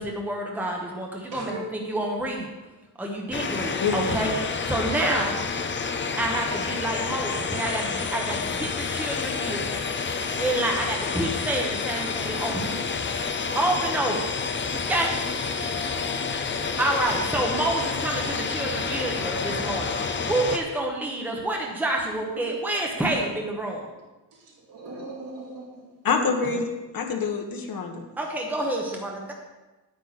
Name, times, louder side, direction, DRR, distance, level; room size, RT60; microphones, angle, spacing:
voice 1, 0.0-2.5 3.0-5.4 6.2-9.8 10.4-12.7 13.0-14.2 14.7-15.2 16.8-23.8 28.2-29.3, right 1 dB, 5° right, 0 dB, 1.0 m, -28 dB
voice 2, 1.3-1.9 5.5-6.0 10.2-10.6 15.3-16.1 22.0-22.1 24.3-25.8, right 2 dB, 75° right, -5 dB, 4.1 m, -41 dB
sound 1, 3.3-20.6, left 5 dB, 30° left, 0.5 m, -29 dB
voice 3, 26.0-26.6 26.9-28.1, left 5 dB, 55° left, 4 dB, 1.3 m, -26 dB
10.0 x 9.3 x 4.1 m, 1.1 s
wide cardioid pair, 180°, 42 cm